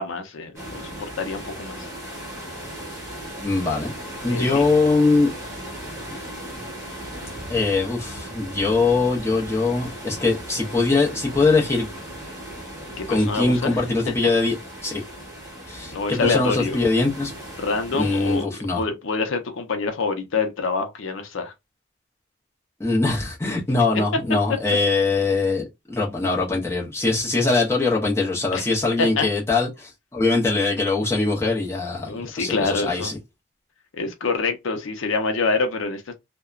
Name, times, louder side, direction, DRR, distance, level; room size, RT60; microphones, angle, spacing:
voice 1, 0.0-1.9 4.3-4.7 13.0-14.1 15.9-16.8 17.6-18.5 18.7-21.5 28.5-28.7 29.0-29.3 32.1-33.1 33.9-36.1, left 4 dB, 85° left, 0.6 m, -26 dB
sound 1, 0.5-18.4, right 1 dB, 15° right, 1.3 m, -37 dB
voice 2, 3.4-3.9 4.2-5.3 7.5-11.9 13.1-15.0 15.7-17.3 17.9-18.8 22.8-33.2, left 3 dB, 15° left, 0.8 m, -22 dB
2.8 x 2.2 x 2.3 m
head